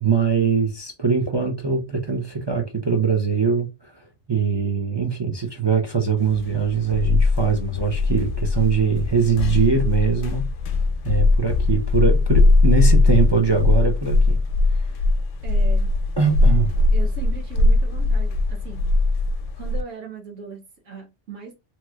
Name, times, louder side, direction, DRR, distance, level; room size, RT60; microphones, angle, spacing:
voice 1, 0.0-3.7 4.3-10.5 11.0-14.4 16.2-16.7, right 6 dB, 35° right, 0.4 m, -22 dB
sound 1, 6.3-19.8, left 3 dB, 85° left, 1.0 m, -20 dB
voice 2, 15.4-15.9 16.9-18.8 19.6-21.6, right 5 dB, 85° right, 1.3 m, -38 dB
3.0 x 2.9 x 2.3 m
omnidirectional pair, 1.2 m